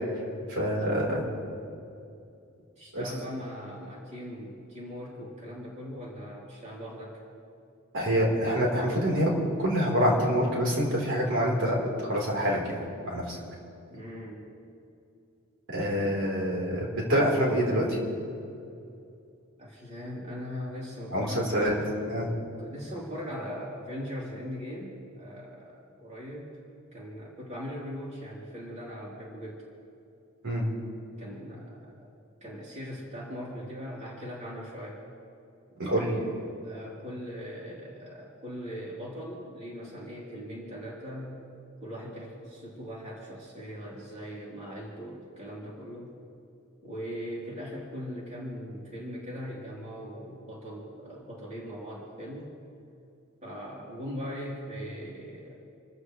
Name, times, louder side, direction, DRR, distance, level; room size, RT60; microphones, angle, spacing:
voice 1, 0.5-1.2 2.9-3.1 7.9-12.8 13.0-13.4 15.7-18.0 21.1-21.8 22.1-22.3 30.4-30.7 35.8-36.1, equal, 60° right, -3 dB, 4.0 m, -26 dB
voice 2, 2.8-7.2 13.9-14.4 19.6-21.9 22.6-26.6 26.9-29.6 31.2-32.1 32.4-35.0 35.8-36.3 36.6-41.4 41.8-46.1 46.8-52.5 53.4-55.5, equal, 35° right, -5 dB, 3.6 m, -40 dB
28.5 x 14.5 x 3.2 m, 2.6 s
head